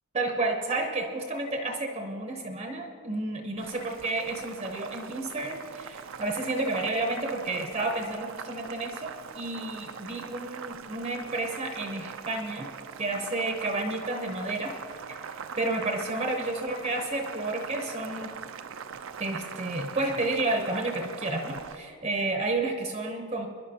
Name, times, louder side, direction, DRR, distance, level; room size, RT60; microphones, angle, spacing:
voice 1, 0.1-12.7 13.0-14.8 15.1-18.3 19.2-23.5, right 2 dB, 30° right, 3 dB, 0.8 m, -31 dB
Boiling, 3.6-21.8, right 6 dB, 60° right, 0.5 m, -42 dB
24.5 x 11.0 x 2.8 m, 2.3 s
head